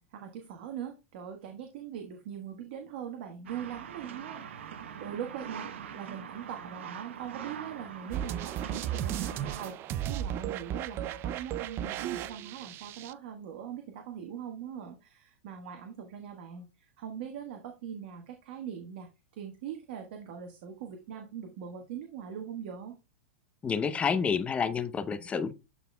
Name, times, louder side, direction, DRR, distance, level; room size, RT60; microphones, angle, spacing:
voice 1, 0.0-22.9, right 8 dB, 60° right, 1.3 m, -41 dB
sound 1, 3.5-9.7, right 8 dB, 80° right, 0.9 m, -43 dB
sound 2, 8.1-13.1, right 11 dB, 35° right, 0.5 m, -35 dB
voice 2, 23.6-25.5, left 6 dB, 20° left, 0.8 m, -29 dB
12.5 x 4.1 x 2.2 m
hypercardioid pair, 125°, 7 cm